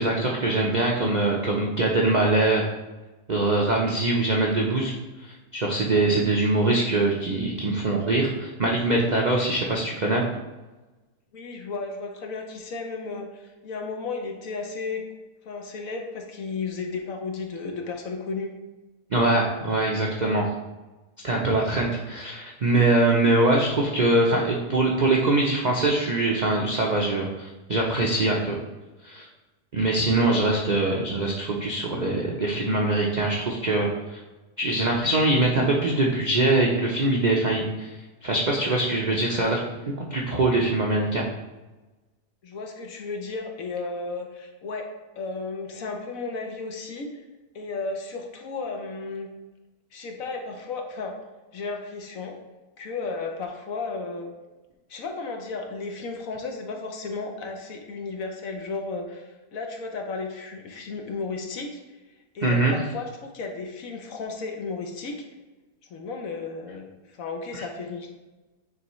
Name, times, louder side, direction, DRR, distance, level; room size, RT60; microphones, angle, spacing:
voice 1, 0.0-2.7 3.3-4.9 5.2-10.2 19.1-20.5 21.2-28.6 29.0-29.3 29.7-34.2 34.6-41.2 62.4-62.8, right 2 dB, 90° right, -2 dB, 0.4 m, -23 dB
voice 2, 11.3-15.0 15.4-18.5 42.4-44.9 45.2-47.2 47.5-49.3 49.9-51.1 51.5-52.4 52.8-54.3 54.9-61.8 62.3-65.1 65.9-68.1, left 4 dB, 60° left, 3 dB, 1.1 m, -34 dB
9.3 x 3.4 x 3.1 m, 1.1 s
omnidirectional pair, 1.8 m